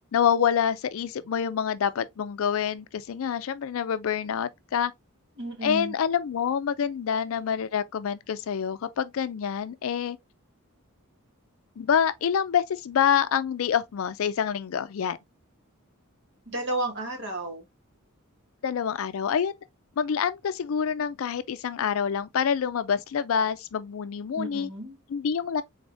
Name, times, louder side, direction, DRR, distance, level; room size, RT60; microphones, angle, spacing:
voice 1, 0.1-4.9 5.6-10.2 11.8-15.2 18.6-19.5 20.0-24.7 25.1-25.6, left 7 dB, 65° left, 0.4 m, -27 dB
voice 2, 5.4-6.0 16.5-17.7 24.3-25.0, right 1 dB, 55° right, 1.6 m, -32 dB
3.9 x 3.4 x 2.6 m
head